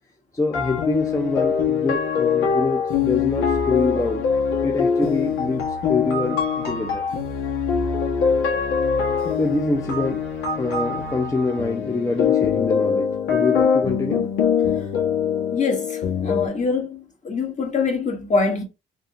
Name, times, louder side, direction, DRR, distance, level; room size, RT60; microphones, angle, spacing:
voice 1, 0.3-4.2 4.6-7.1 9.4-10.2 10.6-14.3, left 3 dB, 15° left, 0.7 m, -25 dB
sound 1, 0.5-16.5, left 6 dB, 90° left, 1.4 m, -23 dB
voice 2, 15.5-18.6, left 4 dB, 35° left, 1.5 m, -24 dB
3.8 x 2.8 x 3.6 m
cardioid pair, 90°, 20 cm